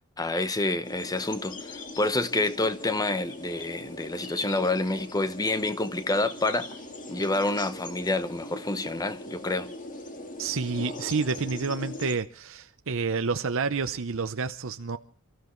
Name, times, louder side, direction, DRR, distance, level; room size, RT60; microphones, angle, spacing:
voice 1, 0.2-6.7 7.1-9.7, left 2 dB, 15° left, 0.9 m, -28 dB
sound 1, 0.8-12.2, left 2 dB, 40° left, 2.1 m, -41 dB
voice 2, 10.4-15.0, right 4 dB, 65° right, 0.7 m, -29 dB
28.5 x 14.5 x 3.1 m
head